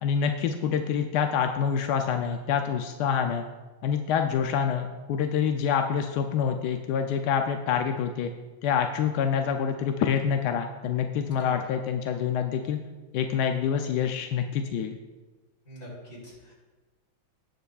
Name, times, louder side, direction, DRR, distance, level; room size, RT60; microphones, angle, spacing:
voice 1, 0.0-3.4 3.8-8.3 8.6-12.8 13.1-15.0, left 7 dB, 75° left, 5 dB, 1.0 m, -26 dB
voice 2, 15.7-16.5, equal, 40° left, -6 dB, 4.1 m, -43 dB
18.0 x 7.9 x 2.4 m, 1.3 s
omnidirectional pair, 2.2 m